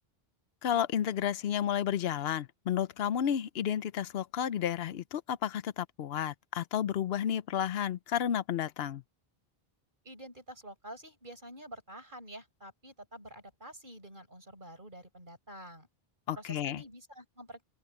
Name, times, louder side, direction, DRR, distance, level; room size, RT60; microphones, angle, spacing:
voice 1, 0.6-9.0 16.3-16.8, left 9 dB, 80° left, 0.9 m, -32 dB
voice 2, 10.0-15.9 16.3-17.6, right 1 dB, 50° right, 6.9 m, -48 dB
open air
omnidirectional pair, 1.0 m